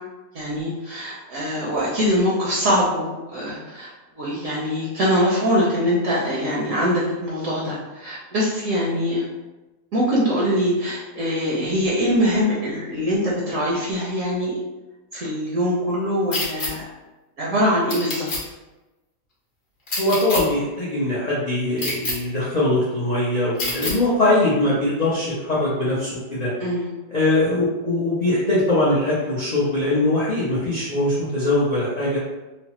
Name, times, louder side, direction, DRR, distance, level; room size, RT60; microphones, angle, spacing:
voice 1, 0.3-9.2 9.9-14.5 15.1-16.9 17.4-18.3 26.6-26.9, equal, 65° right, -5 dB, 0.9 m, -23 dB
sound 1, 16.3-16.7 17.9-18.4 19.9-20.4 21.8-22.1 23.6-23.9, left 2 dB, 40° left, 0.9 m, -26 dB
voice 2, 20.0-26.5 27.1-32.2, left 2 dB, 70° left, -8 dB, 0.4 m, -21 dB
3.1 x 2.0 x 2.9 m, 1.1 s
omnidirectional pair, 1.6 m